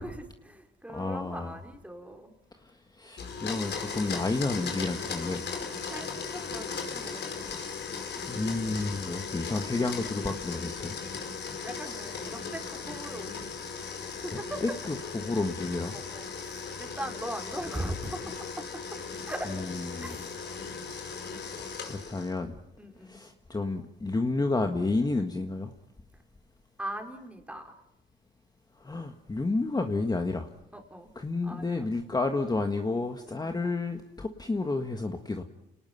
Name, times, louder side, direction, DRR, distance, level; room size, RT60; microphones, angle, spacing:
voice 1, 0.0-2.3 5.9-7.2 11.6-13.5 14.1-14.6 15.9-18.7 19.2-19.5 20.0-20.4 22.8-23.2 26.8-27.7 30.7-31.1 31.4-31.9 33.4-33.6, right 1 dB, 5° right, 4 dB, 4.2 m, -40 dB
voice 2, 0.9-1.6 2.6-5.5 8.3-11.0 11.5-12.3 14.3-16.0 19.5-20.2 21.3-22.6 23.0-25.7 28.8-30.5 31.1-35.4, left 3 dB, 20° left, 5 dB, 1.6 m, -31 dB
Domestic sounds home sounds, 3.2-22.4, left 5 dB, 60° left, 5.0 m, -37 dB
29.5 x 19.0 x 5.8 m, 0.88 s
cardioid pair, 90°, 20 cm